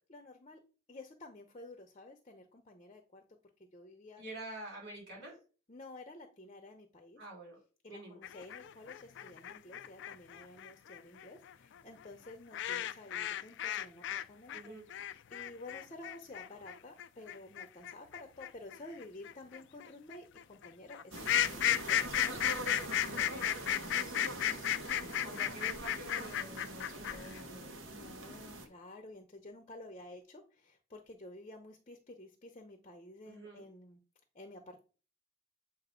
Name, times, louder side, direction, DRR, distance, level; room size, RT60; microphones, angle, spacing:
voice 1, 0.1-0.6 0.9-3.2 3.6-4.2 5.7-7.2 7.8-22.4 24.4-25.3 27.9-34.0 34.3-34.8, left 2 dB, 30° left, 4 dB, 0.8 m, -52 dB
voice 2, 4.2-5.4 7.2-7.6 7.9-8.2 14.5-14.9 23.1-24.4 25.2-27.7 33.2-33.6, right 1 dB, 60° right, -1 dB, 3.3 m, -48 dB
sound 1, 8.2-14.2 14.5-27.4, left 11 dB, 65° left, 0.4 m, -34 dB
sound 2, 21.1-28.7, right 1 dB, 80° right, 1.1 m, -43 dB
7.7 x 2.7 x 5.0 m, 0.36 s
head